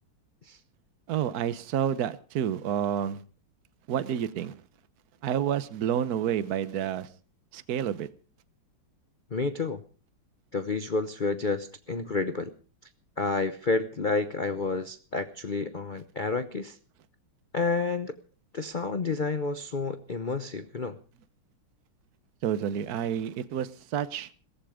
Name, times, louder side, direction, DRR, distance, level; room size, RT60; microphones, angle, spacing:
voice 1, 1.1-3.2 3.9-4.5 5.2-7.1 7.5-8.1 22.4-24.3, right 9 dB, 55° right, 14 dB, 1.2 m, -29 dB
voice 2, 9.3-9.8 10.5-12.5 13.2-16.8 17.5-18.2 18.5-21.0, left 3 dB, 85° left, 10 dB, 0.4 m, -30 dB
17.0 x 15.0 x 5.0 m, 0.37 s
omnidirectional pair, 2.4 m